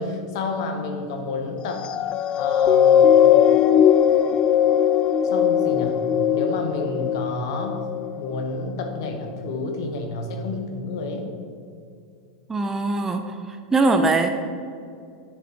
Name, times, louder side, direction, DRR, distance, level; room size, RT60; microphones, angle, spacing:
voice 1, 0.0-1.9 2.3-3.2 5.2-6.0 6.3-7.8 8.2-11.3, left 3 dB, 60° left, 5 dB, 1.3 m, -30 dB
sound 1, 1.7-8.4 9.0-9.2, left 9 dB, 35° left, 0.3 m, -19 dB
voice 2, 12.5-14.3, right 3 dB, 15° right, 6 dB, 0.7 m, -22 dB
10.0 x 7.0 x 4.6 m, 2.3 s
figure-of-eight pair, 90°, 3 cm